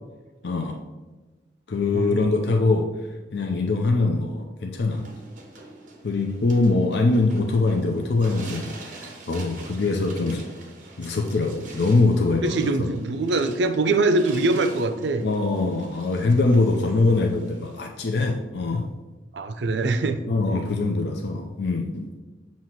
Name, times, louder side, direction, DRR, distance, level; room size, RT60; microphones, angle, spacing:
voice 1, 0.4-0.8 1.7-2.9 3.3-5.0 6.0-10.5 11.0-12.9 15.2-18.8 20.3-22.1, left 3 dB, 70° left, 2 dB, 0.6 m, -23 dB
sound 1, 4.9-17.9, right 2 dB, 45° right, 1.0 m, -45 dB
voice 2, 12.4-15.2 19.3-20.2, right 2 dB, 85° right, 10 dB, 0.5 m, -23 dB
7.5 x 2.9 x 5.8 m, 1.3 s
head